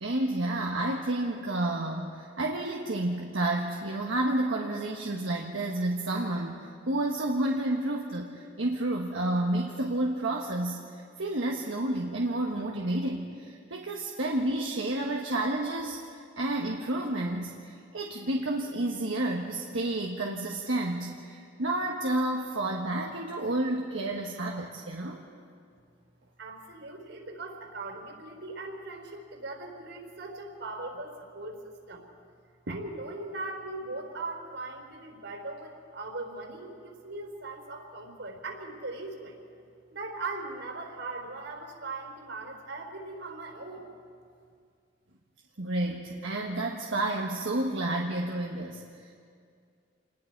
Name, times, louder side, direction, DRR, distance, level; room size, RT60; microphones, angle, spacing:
voice 1, 0.0-25.2 32.7-32.8 45.6-49.2, right 1 dB, 90° right, -1 dB, 1.5 m, -30 dB
voice 2, 26.4-32.0 32.7-39.4 39.9-43.8, right 2 dB, 70° right, 2 dB, 4.4 m, -39 dB
28.0 x 20.5 x 4.7 m, 2.3 s
head